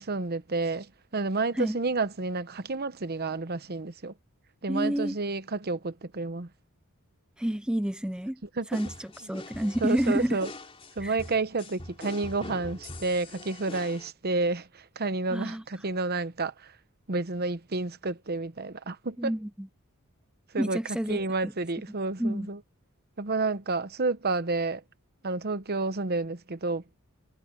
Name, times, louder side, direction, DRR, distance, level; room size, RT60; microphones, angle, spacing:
voice 1, 0.0-4.1 4.6-6.5 8.6-8.8 9.8-10.5 11.0-16.7 17.1-19.3 20.5-20.8 21.1-22.6 23.2-24.8 25.2-26.8, right 3 dB, 45° right, 1.0 m, -30 dB
voice 2, 4.7-5.2 7.4-8.4 8.7-10.4 11.0-11.2 15.3-15.6 19.2-19.7 20.6-21.2 22.2-22.5, equal, 5° right, 0.5 m, -29 dB
sound 1, 8.7-14.1, left 2 dB, 25° left, 3.3 m, -43 dB
head